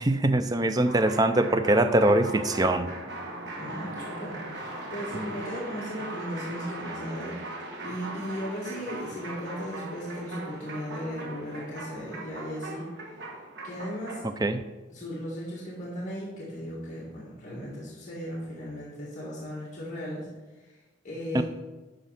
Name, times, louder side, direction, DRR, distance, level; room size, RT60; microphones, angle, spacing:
voice 1, 0.0-2.9 5.1-5.3 14.4-14.6 21.3-21.4, right 1 dB, 20° right, 9 dB, 0.4 m, -23 dB
sound 1, 0.8-14.4, right 2 dB, 55° right, 1.3 m, -39 dB
voice 2, 3.6-13.3 13.6-14.2 14.9-20.3 20.6-20.8 21.0-21.4, equal, 35° left, -8 dB, 2.1 m, -37 dB
11.5 x 3.9 x 5.8 m, 1.2 s
head